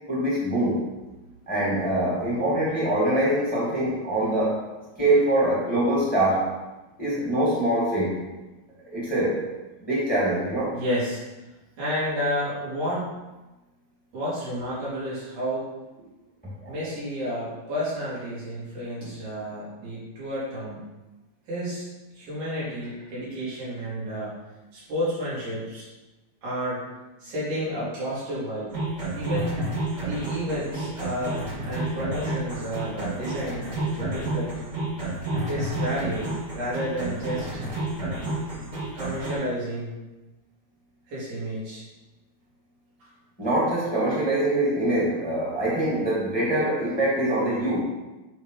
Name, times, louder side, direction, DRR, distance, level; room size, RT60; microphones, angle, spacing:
voice 1, 0.1-0.8 1.5-4.6 5.0-6.5 7.0-8.2 8.9-9.4 9.9-10.8 16.6-16.7 43.4-47.8, right 1 dB, 5° left, -8 dB, 1.7 m, -24 dB
voice 2, 10.7-11.2 11.8-13.1 14.1-15.6 16.7-20.8 21.5-21.9 22.1-24.4 24.7-25.9 26.4-26.8 27.2-28.8 29.1-29.6 30.0-33.7 33.9-34.5 35.5-37.6 38.9-39.9 41.1-41.8 43.0-43.1, equal, 90° right, -9 dB, 4.1 m, -31 dB
sound 1, 28.7-39.3, right 2 dB, 40° right, 1.8 m, -30 dB
7.1 x 3.5 x 4.8 m, 1.1 s
omnidirectional pair, 3.5 m